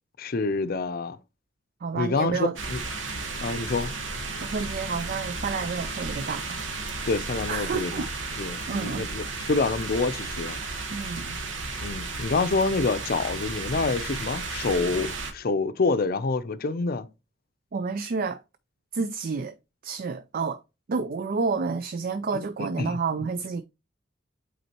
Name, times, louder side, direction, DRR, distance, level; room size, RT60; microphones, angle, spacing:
voice 1, 0.2-1.2 1.9-2.8 3.4-3.9 7.1-8.1 8.4-10.6 11.8-17.1 22.6-23.0, left 3 dB, 50° left, 0.5 m, -27 dB
voice 2, 1.8-2.5 4.4-6.7 7.5-8.1 8.7-9.0 10.9-11.4 17.7-18.4 18.9-19.5 19.8-20.6 20.9-23.6, right 4 dB, 50° right, 0.4 m, -29 dB
sound 1, 2.6-15.3, right 3 dB, 85° right, 1.3 m, -34 dB
8.1 x 4.2 x 2.9 m
head